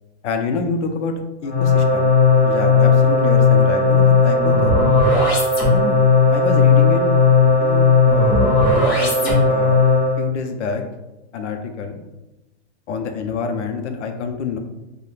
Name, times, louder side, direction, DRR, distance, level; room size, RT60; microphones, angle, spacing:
voice 1, 0.2-1.1 1.4-2.1 2.4-4.7 5.7-6.0 6.3-7.2 7.6-8.5 9.0-9.8 10.2-10.8 11.3-12.0 12.9-14.6, left 4 dB, 80° left, 5 dB, 0.5 m, -27 dB
sound 1, 1.4-10.2, left 4 dB, 20° left, 0.4 m, -15 dB
2.4 x 2.1 x 3.0 m, 1.0 s
supercardioid pair, 165°, 35 cm